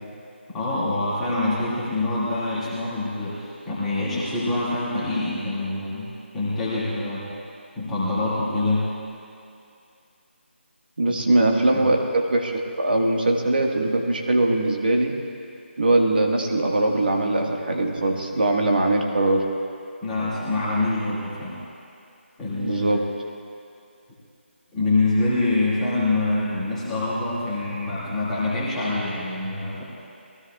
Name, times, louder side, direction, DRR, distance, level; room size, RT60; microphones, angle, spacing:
voice 1, 0.5-7.3 7.8-8.9 11.7-11.8 20.0-21.6 22.4-23.0 24.7-29.8, left 2 dB, 5° left, -13 dB, 2.1 m, -25 dB
voice 2, 11.0-15.2 15.8-19.5 22.6-23.1, right 2 dB, 50° right, 1 dB, 1.6 m, -21 dB
23.0 x 16.0 x 2.4 m, 2.6 s
figure-of-eight pair, 180°, 7 cm